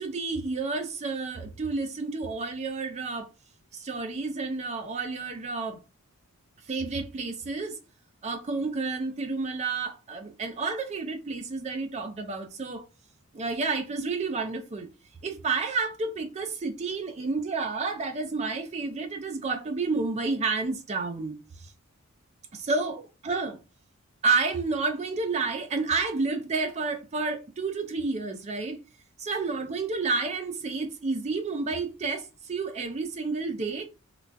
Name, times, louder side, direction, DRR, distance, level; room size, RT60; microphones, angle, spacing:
voice 1, 0.0-3.3 3.7-5.8 6.7-7.8 8.2-12.8 13.3-14.9 15.2-21.7 22.5-23.6 24.2-28.8 29.2-33.9, right 3 dB, 30° right, 0.4 m, -30 dB
3.9 x 2.2 x 2.2 m
head